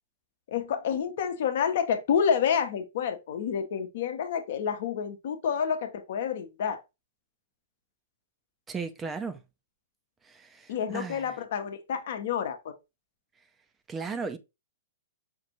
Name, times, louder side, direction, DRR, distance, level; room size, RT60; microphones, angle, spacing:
voice 1, 0.5-6.8 10.7-12.7, left 7 dB, 60° left, 0.8 m, -29 dB
voice 2, 8.7-9.4 10.2-11.3 13.9-14.4, right 5 dB, 15° right, 0.5 m, -36 dB
5.3 x 2.5 x 3.0 m
hypercardioid pair, 115°, 0 cm